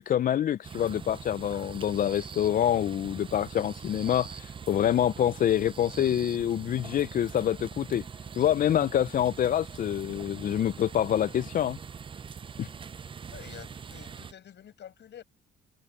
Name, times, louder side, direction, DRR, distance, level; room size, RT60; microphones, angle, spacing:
voice 1, 0.0-8.0 8.4-11.8 12.6-12.7, left 10 dB, 45° left, 0.4 m, -26 dB
sound 1, 0.6-14.3, right 6 dB, 25° right, 0.4 m, -43 dB
voice 2, 13.3-15.2, left 10 dB, 65° left, 6.3 m, -48 dB
cardioid pair, 90°, 20 cm